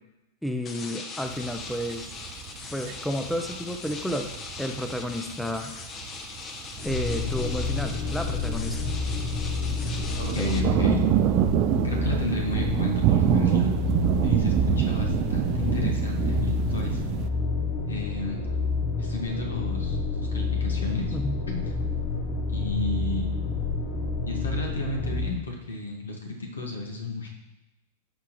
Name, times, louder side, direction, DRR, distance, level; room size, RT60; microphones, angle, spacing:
voice 1, 0.4-2.1 2.7-4.3 4.6-5.7 6.8-8.9 10.4-10.5 21.1-21.4, equal, ahead, 6 dB, 0.6 m, -31 dB
sound 1, 0.6-10.6, left 4 dB, 30° left, 0.8 m, -40 dB
sound 2, 1.3-17.3, right 12 dB, 45° right, 0.4 m, -27 dB
sound 3, 6.8-25.3, left 4 dB, 50° left, 2.4 m, -29 dB
voice 2, 10.2-11.1 11.8-13.7 14.2-17.0 17.9-18.4 19.0-20.0 20.3-21.2 21.5-21.6 22.5-23.3 24.3-27.3, left 2 dB, 85° left, 1 dB, 1.6 m, -32 dB
13.5 x 4.7 x 3.1 m, 0.98 s
hypercardioid pair, 100°, 0 cm